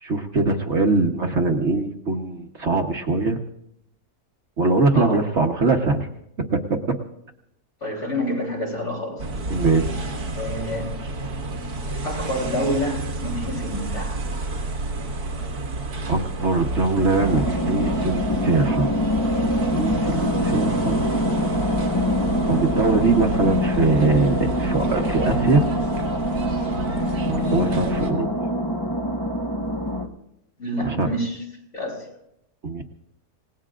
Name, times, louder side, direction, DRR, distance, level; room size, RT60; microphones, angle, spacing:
voice 1, 0.0-3.4 4.6-6.1 6.5-7.0 9.5-10.0 16.1-18.9 19.4-21.0 22.5-25.6 27.2-28.3 30.9-31.1 32.6-32.8, right 3 dB, 50° right, 3 dB, 1.4 m, -22 dB
voice 2, 7.8-9.3 10.3-11.0 12.0-14.2 27.9-28.1 30.6-31.4 31.7-32.1, equal, 50° left, -1 dB, 4.0 m, -28 dB
sound 1, 9.2-28.1, right 2 dB, 90° right, 2.2 m, -30 dB
sound 2, 17.2-30.1, equal, 15° left, 1.1 m, -24 dB
28.0 x 18.0 x 2.5 m, 0.77 s
omnidirectional pair, 1.6 m